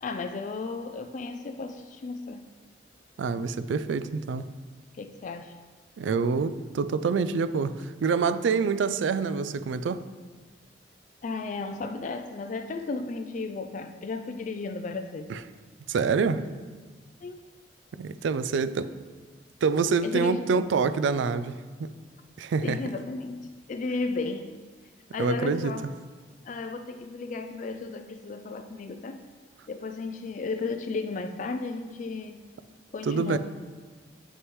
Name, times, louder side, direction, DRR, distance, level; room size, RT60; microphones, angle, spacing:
voice 1, 0.0-2.5 5.0-5.5 11.2-15.4 17.2-17.4 20.0-20.6 22.6-24.6 25.1-25.9 26.4-29.2 29.7-32.4 32.9-33.4, left 3 dB, 40° left, 7 dB, 0.3 m, -34 dB
voice 2, 3.2-4.4 6.0-7.7 8.0-10.0 15.3-15.4 15.9-16.4 17.9-18.9 19.6-21.5 21.8-21.9 22.4-22.8 25.2-25.7 33.1-33.4, right 5 dB, 80° right, 13 dB, 0.3 m, -26 dB
7.5 x 6.3 x 3.1 m, 1.4 s
head